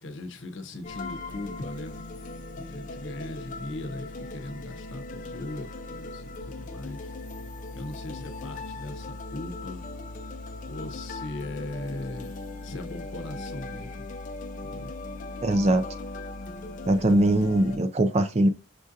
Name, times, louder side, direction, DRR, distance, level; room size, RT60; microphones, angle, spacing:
voice 1, 0.0-2.1 2.5-7.1 7.7-9.8 10.6-12.3 12.6-14.1 14.6-14.9, left 2 dB, 65° left, 0.7 m, -39 dB
sound 1, 0.8-17.8, left 2 dB, 40° left, 0.4 m, -39 dB
voice 2, 15.4-15.8 16.9-18.5, right 1 dB, 30° right, 0.4 m, -21 dB
6.1 x 2.5 x 2.6 m
head